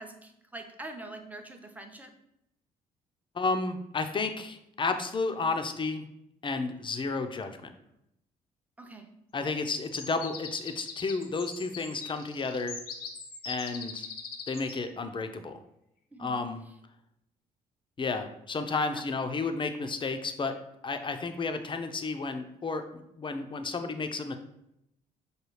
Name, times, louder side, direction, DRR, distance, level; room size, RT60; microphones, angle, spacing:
voice 1, 0.0-2.1 8.8-9.1 16.1-16.4 18.9-19.0, right 2 dB, 10° right, 4 dB, 0.7 m, -44 dB
voice 2, 3.3-6.0 6.4-7.7 9.3-12.8 13.5-14.1 14.5-15.6 16.2-16.6 18.0-20.6 20.8-24.4, left 3 dB, 30° left, 8 dB, 0.5 m, -32 dB
sound 1, 9.4-14.8, left 5 dB, 60° left, 0.7 m, -42 dB
4.8 x 2.3 x 3.2 m, 0.81 s
hypercardioid pair, 55°, 17 cm